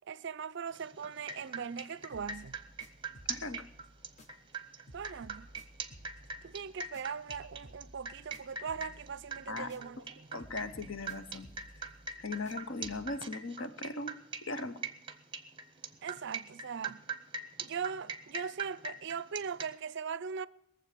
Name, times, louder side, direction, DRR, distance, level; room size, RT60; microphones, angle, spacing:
voice 1, 0.1-2.5 4.9-5.5 6.4-10.0 10.3-10.4 16.0-17.0 17.6-20.5, right 6 dB, 55° right, 0.4 m, -40 dB
sound 1, 0.7-19.7, right 5 dB, 25° right, 0.8 m, -42 dB
sound 2, 2.1-4.6 4.9-10.1 10.4-13.2, equal, 35° left, 1.0 m, -56 dB
voice 2, 3.3-3.6 9.5-10.0 10.3-11.5 12.2-14.2 14.5-14.8, left 3 dB, 60° left, 1.0 m, -39 dB
21.5 x 7.5 x 6.8 m
head